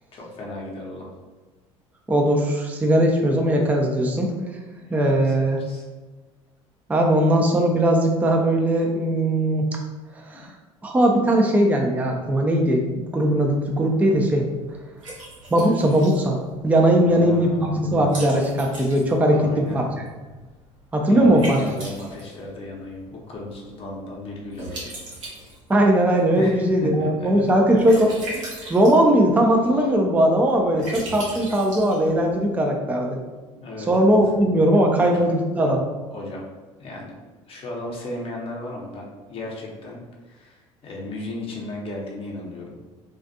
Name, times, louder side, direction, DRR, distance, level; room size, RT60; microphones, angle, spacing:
voice 1, 0.1-1.1 4.7-5.8 10.3-10.5 17.0-17.9 19.3-19.8 21.1-24.9 26.3-27.5 33.6-34.2 34.9-35.3 36.1-36.4 36.8-37.2 37.5-40.0 40.2-42.8, left 2 dB, 35° left, -2 dB, 0.7 m, -35 dB
voice 2, 2.1-4.3 4.9-5.6 6.9-9.7 10.3-10.5 10.8-14.5 15.5-16.4 16.6-19.8 20.9-21.6 25.7-28.1 28.7-33.2 33.9-35.8, right 1 dB, 10° right, 1 dB, 0.4 m, -19 dB
Liquid, 13.1-32.5, right 1 dB, 85° right, 0.8 m, -41 dB
2.4 x 2.3 x 2.6 m, 1.3 s
hypercardioid pair, 65°, 16 cm